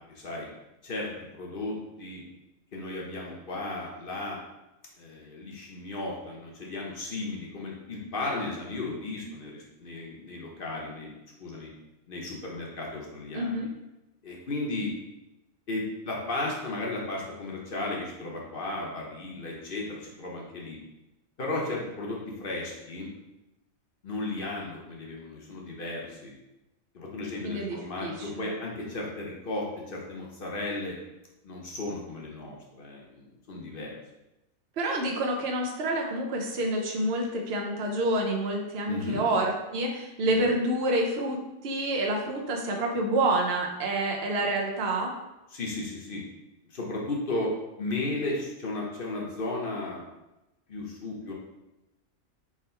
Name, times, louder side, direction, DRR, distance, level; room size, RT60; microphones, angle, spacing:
voice 1, 0.1-0.5 0.8-2.2 2.7-4.4 5.0-11.1 11.4-11.7 12.1-13.7 14.2-14.9 15.7-20.8 21.4-23.1 24.0-26.3 26.9-31.0 31.4-34.0 38.9-39.3 45.5-46.2 46.6-47.5 47.8-50.1 50.7-51.3, left 2 dB, 45° left, -2 dB, 0.9 m, -35 dB
voice 2, 13.3-13.7 27.4-28.5 34.8-45.1, right 1 dB, 55° right, 0 dB, 0.9 m, -28 dB
3.6 x 3.2 x 4.4 m, 0.96 s
omnidirectional pair, 1.4 m